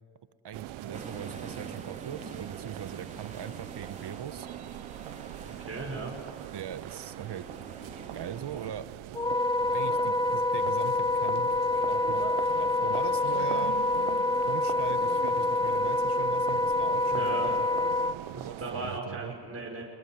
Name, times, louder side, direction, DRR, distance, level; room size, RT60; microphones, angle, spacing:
voice 1, 0.4-4.5 6.5-7.4 8.1-8.9 9.7-11.5 11.9-12.3 12.6-13.8 14.5-17.7 18.4-19.4, right 9 dB, 60° right, 13 dB, 1.4 m, -40 dB
sound 1, 0.5-19.0, right 16 dB, 85° right, 0.7 m, -42 dB
sound 2, 0.9-8.7, right 2 dB, 15° right, 3.5 m, -47 dB
voice 2, 5.4-6.1 17.1-17.5 18.3-19.8, right 3 dB, 30° right, -2 dB, 5.9 m, -37 dB
Wind instrument woodwind instrument, 9.1-18.2, left 2 dB, 10° left, 0.8 m, -27 dB
25.0 x 21.0 x 7.8 m, 2.1 s
supercardioid pair, 55°, 46 cm